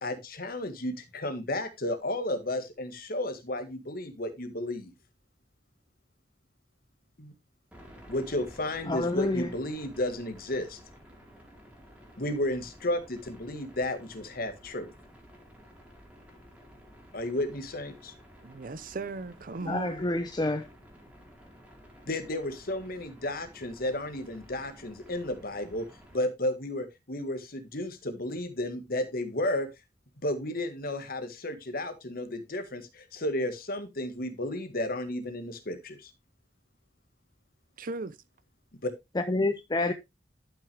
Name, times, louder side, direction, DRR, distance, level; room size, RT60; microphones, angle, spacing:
voice 1, 0.0-4.9 7.2-7.3 8.1-10.8 12.2-14.9 17.1-18.1 22.1-25.9 26.1-29.7 30.2-36.1 38.8-38.9, left 1 dB, 55° left, 1.6 m, -33 dB
sound 1, 7.7-26.2, equal, 10° right, 2.4 m, -53 dB
voice 2, 8.9-9.5 19.7-20.7 39.2-39.9, left 2 dB, 25° left, 0.6 m, -28 dB
voice 3, 18.4-20.0 37.8-38.2, right 3 dB, 55° right, 0.7 m, -37 dB
11.5 x 6.1 x 3.4 m
head